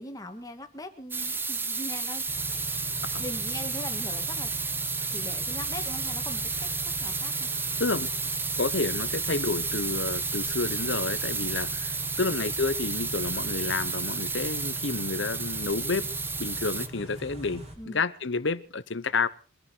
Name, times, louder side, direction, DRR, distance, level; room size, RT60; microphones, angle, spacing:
voice 1, 0.0-2.3 2.6-2.7 3.2-4.5 5.1-7.5 17.8-18.0, left 1 dB, 20° left, 2.0 m, -41 dB
sound 1, 1.1-16.9, right 4 dB, 10° right, 0.8 m, -31 dB
Car / Idling, 2.3-17.7, right 1 dB, 30° right, 6.6 m, -42 dB
voice 2, 7.8-8.1 8.6-16.1 16.4-19.3, left 4 dB, 65° left, 0.9 m, -30 dB
24.0 x 11.0 x 4.6 m
head